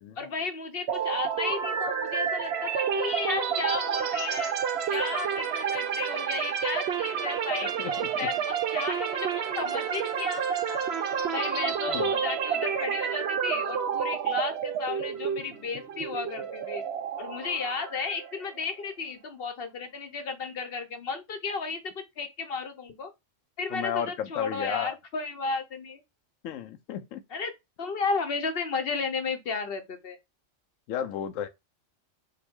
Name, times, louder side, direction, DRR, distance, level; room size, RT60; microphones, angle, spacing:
voice 1, 0.2-4.5 4.9-10.8 11.3-16.8 17.2-23.1 23.6-26.0 27.3-27.5 27.8-30.2, left 4 dB, 55° left, 0.9 m, -33 dB
sound 1, 0.9-18.6, right 8 dB, 65° right, 0.8 m, -30 dB
voice 2, 7.6-8.1 11.9-12.1 23.7-25.0 26.4-27.2 30.9-31.5, left 9 dB, 90° left, 1.0 m, -33 dB
5.6 x 2.2 x 3.5 m
omnidirectional pair, 1.3 m